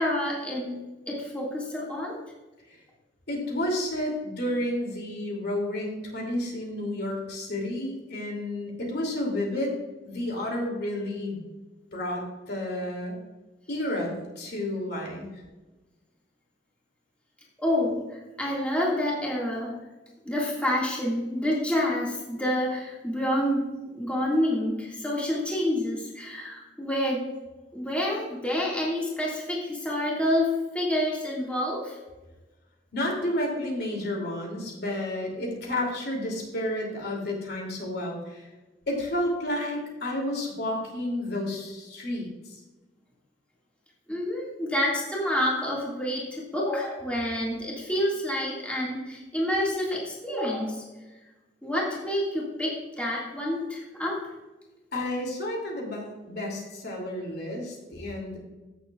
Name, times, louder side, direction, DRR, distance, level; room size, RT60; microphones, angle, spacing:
voice 1, 0.0-2.2 17.6-19.8 20.3-27.3 27.7-32.0 44.1-50.8 51.6-54.2 56.6-56.7, left 1 dB, 5° left, -4 dB, 1.9 m, -28 dB
voice 2, 3.3-9.7 10.0-11.4 11.9-13.2 13.7-15.3 32.9-38.5 38.9-42.6 54.9-58.4, left 1 dB, 65° left, 0 dB, 2.8 m, -31 dB
15.5 x 7.0 x 2.4 m, 1.1 s
head